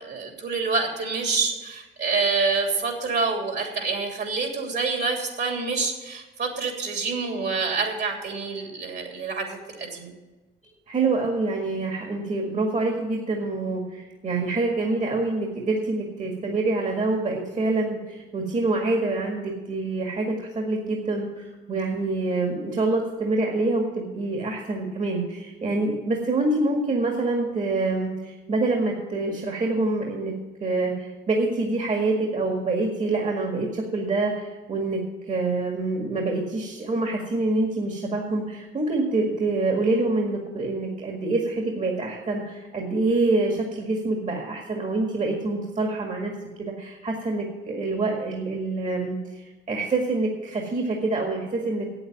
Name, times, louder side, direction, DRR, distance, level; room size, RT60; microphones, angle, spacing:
voice 1, 0.0-10.1, right 4 dB, 55° right, 2 dB, 3.0 m, -27 dB
voice 2, 10.9-30.3 30.6-49.2 49.7-51.9, right 2 dB, 40° right, 0 dB, 2.0 m, -26 dB
8.5 x 8.0 x 8.9 m, 1.2 s
cardioid pair, 90°, 20 cm